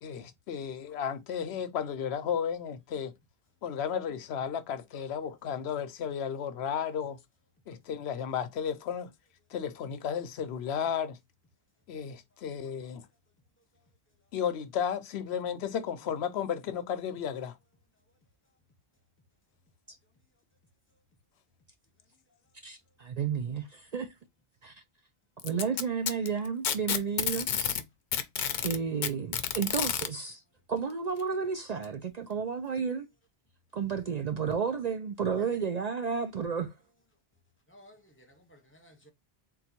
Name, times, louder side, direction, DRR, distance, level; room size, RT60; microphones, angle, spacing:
voice 1, 0.0-3.1 3.6-7.2 7.7-9.1 9.5-11.2 11.9-13.1 14.3-17.6, left 8 dB, 85° left, 0.9 m, -33 dB
voice 2, 22.6-24.1 24.6-24.8 25.4-27.8 28.6-30.4 30.7-33.1 33.7-36.7, right 6 dB, 55° right, 0.5 m, -32 dB
Packing tape duct tape, 25.4-27.8 28.1-30.1 31.2-31.3 31.8-31.9 32.8-32.9, left 8 dB, 55° left, 0.6 m, -30 dB
voice 3, 37.7-39.1, equal, 15° left, 0.9 m, -56 dB
3.8 x 2.3 x 4.3 m
omnidirectional pair, 1.1 m